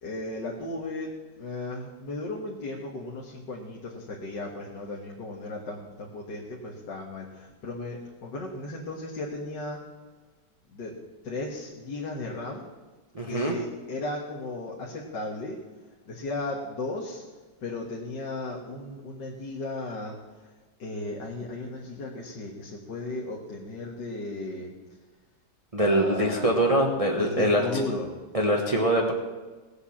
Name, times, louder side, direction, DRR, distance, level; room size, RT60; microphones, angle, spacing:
voice 1, 0.0-9.8 10.7-11.0 11.2-12.6 13.3-15.6 16.0-17.2 17.6-20.5 20.8-24.7 25.8-26.6 27.2-28.1, left 2 dB, 80° left, -1 dB, 2.3 m, -35 dB
voice 2, 13.1-13.6 25.7-27.8 28.3-29.1, right 1 dB, 20° right, 0 dB, 1.2 m, -23 dB
17.5 x 8.1 x 7.2 m, 1.3 s
omnidirectional pair, 1.8 m